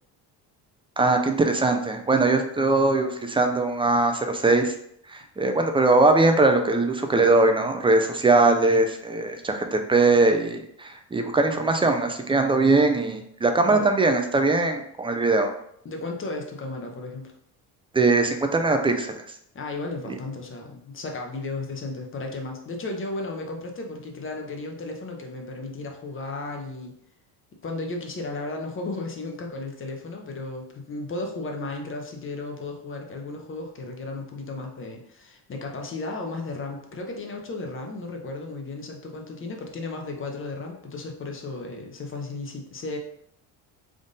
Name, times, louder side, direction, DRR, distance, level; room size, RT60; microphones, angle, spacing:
voice 1, 1.0-4.7 5.1-15.5 17.9-19.2, right 3 dB, 15° right, 5 dB, 0.4 m, -21 dB
voice 2, 15.8-17.3 19.5-26.9 27.6-43.0, left 2 dB, 30° left, 2 dB, 0.8 m, -34 dB
3.6 x 2.5 x 3.9 m, 0.71 s
supercardioid pair, 95°, 42 cm